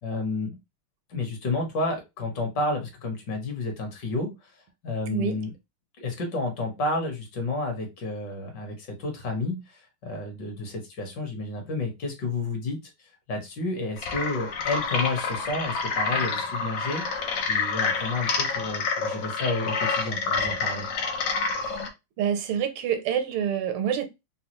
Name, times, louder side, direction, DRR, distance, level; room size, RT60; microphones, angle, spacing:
voice 1, 0.0-0.6 1.1-4.5 4.8-5.5 6.0-20.9, left 2 dB, 60° left, 1.5 m, -31 dB
sound 1, 14.0-21.9, left 4 dB, 80° left, 0.7 m, -28 dB
voice 2, 22.2-24.0, right 8 dB, 85° right, 1.6 m, -27 dB
4.1 x 2.2 x 2.9 m
omnidirectional pair, 2.3 m